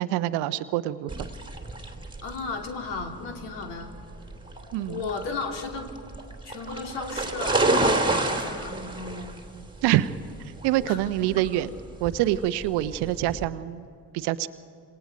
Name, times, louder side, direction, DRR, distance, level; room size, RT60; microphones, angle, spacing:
voice 1, 0.0-1.3 4.7-5.1 9.8-10.1 10.6-11.7 12.0-13.9 14.1-14.5, right 14 dB, 55° right, 15 dB, 0.8 m, -25 dB
sound 1, 1.1-13.5, right 2 dB, 10° right, 2.6 m, -30 dB
voice 2, 2.2-3.9 4.9-5.9 6.4-9.4 10.9-11.3, left 4 dB, 60° left, 3 dB, 3.0 m, -35 dB
30.0 x 27.0 x 5.2 m, 2.3 s
figure-of-eight pair, 50°, 48 cm